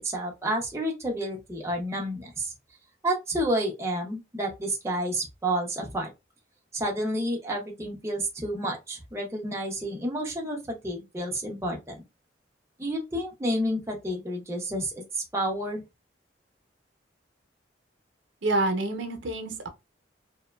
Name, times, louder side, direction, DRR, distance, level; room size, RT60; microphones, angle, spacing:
voice 1, 0.0-2.5 3.0-6.1 6.7-12.0 12.8-15.8, right 1 dB, 15° right, 0.5 m, -30 dB
voice 2, 18.4-19.7, right 2 dB, 75° right, 0.7 m, -27 dB
2.8 x 2.2 x 2.2 m
head